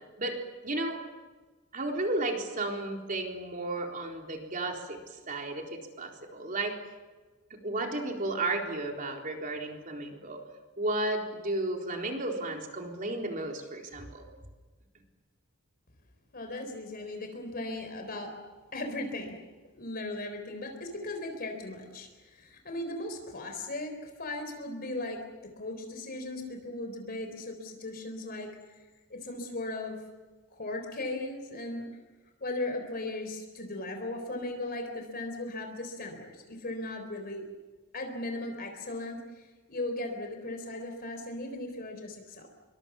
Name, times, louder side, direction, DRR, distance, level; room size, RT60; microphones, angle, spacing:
voice 1, 0.6-1.0 1.7-6.8 7.5-10.4 10.8-14.2, right 2 dB, 40° right, 2 dB, 3.9 m, -33 dB
voice 2, 16.3-18.4 18.7-19.4 19.7-28.8 29.1-30.0 30.5-31.9 32.4-37.4 37.9-42.5, left 2 dB, 45° left, 5 dB, 3.7 m, -37 dB
26.5 x 23.5 x 7.2 m, 1.3 s
head